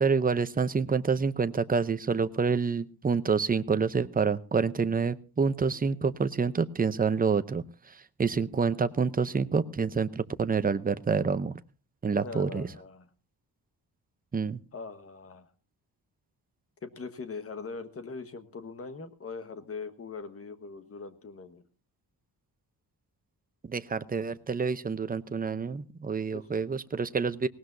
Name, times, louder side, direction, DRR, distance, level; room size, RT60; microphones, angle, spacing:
voice 1, 0.0-11.6 12.0-12.7 14.3-14.6 23.6-27.5, right 5 dB, 20° right, 12 dB, 0.6 m, -28 dB
voice 2, 12.2-13.1 14.7-15.5 16.8-21.6 26.3-26.5, left 4 dB, 35° left, 11 dB, 1.3 m, -41 dB
19.0 x 18.5 x 2.6 m, 0.34 s
wide cardioid pair, 180°, 40 cm